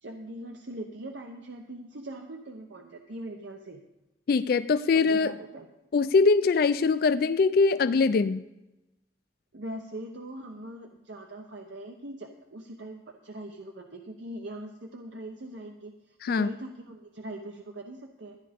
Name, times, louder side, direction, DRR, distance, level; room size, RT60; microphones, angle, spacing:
voice 1, 0.0-3.8 4.9-5.7 9.5-18.4, right 1 dB, 70° right, 3 dB, 0.9 m, -41 dB
voice 2, 4.3-5.3 5.9-8.4 16.2-16.5, left 4 dB, 50° left, 13 dB, 0.3 m, -22 dB
13.0 x 9.8 x 5.1 m, 0.96 s
head